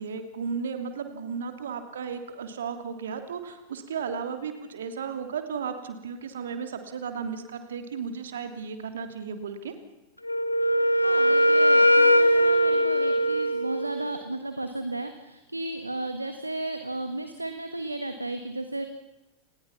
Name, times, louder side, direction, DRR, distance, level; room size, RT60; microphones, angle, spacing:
voice 1, 0.0-9.7, right 6 dB, 65° right, 8 dB, 2.9 m, -34 dB
Wind instrument woodwind instrument, 10.3-14.1, equal, 85° left, 1.3 m, -21 dB
voice 2, 11.0-18.8, right 2 dB, 85° right, 8 dB, 1.6 m, -34 dB
29.0 x 20.0 x 5.9 m, 1.0 s
figure-of-eight pair, 90°, 0 cm